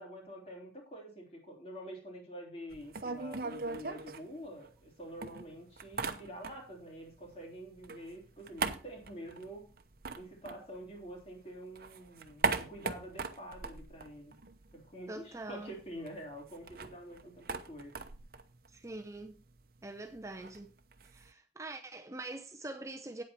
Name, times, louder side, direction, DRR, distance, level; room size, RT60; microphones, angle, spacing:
voice 1, 0.0-9.7 10.1-14.3 14.7-18.0, equal, 35° left, 3.4 m, -47 dB
sound 1, 2.7-4.9 5.2-6.8 7.1-11.3 11.6-14.9 15.1-15.2 15.5-21.3, right 4 dB, 55° right, 0.8 m, -40 dB
voice 2, 15.1-15.7 18.7-19.4 19.8-20.7 21.0-23.2, right 2 dB, 15° right, 0.6 m, -44 dB
9.0 x 8.3 x 4.4 m
head